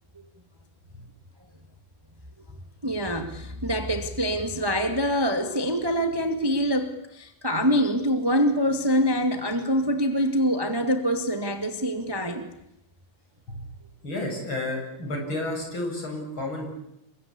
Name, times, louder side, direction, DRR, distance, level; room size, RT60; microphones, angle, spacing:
voice 1, 2.8-12.4, equal, 10° right, 6 dB, 1.0 m, -25 dB
voice 2, 14.0-16.7, left 1 dB, 30° left, 2 dB, 8.1 m, -31 dB
29.5 x 23.5 x 8.5 m, 0.81 s
omnidirectional pair, 4.3 m